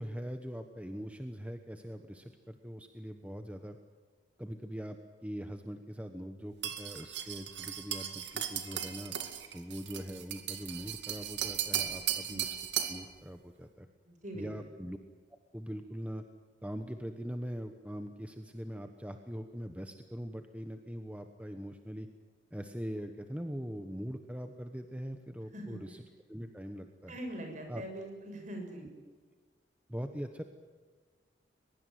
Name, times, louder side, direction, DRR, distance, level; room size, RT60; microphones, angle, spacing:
voice 1, 0.0-3.8 4.4-9.1 9.5-12.5 12.9-13.9 14.3-15.0 15.5-16.2 16.6-22.1 22.5-26.0 26.3-27.1 27.7-27.8 29.9-30.4, equal, 5° right, 6 dB, 1.1 m, -42 dB
sound 1, 6.6-13.1, right 10 dB, 70° right, 2.4 m, -37 dB
voice 2, 14.0-14.7 25.5-25.8 27.1-28.9, right 1 dB, 45° right, 4 dB, 6.6 m, -42 dB
22.5 x 22.0 x 9.3 m, 1.4 s
head